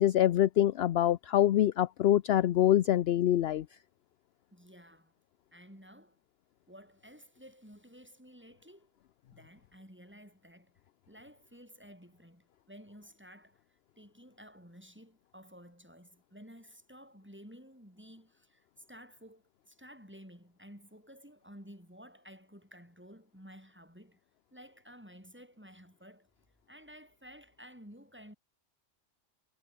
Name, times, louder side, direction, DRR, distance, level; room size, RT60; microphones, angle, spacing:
voice 1, 0.0-3.7, left 12 dB, 65° left, 0.8 m, -25 dB
voice 2, 4.5-5.1 5.5-6.2 6.7-8.9 9.3-10.7 11.1-24.2 24.5-26.3 26.7-28.4, equal, 10° right, 7.4 m, -53 dB
omnidirectional pair, 1.2 m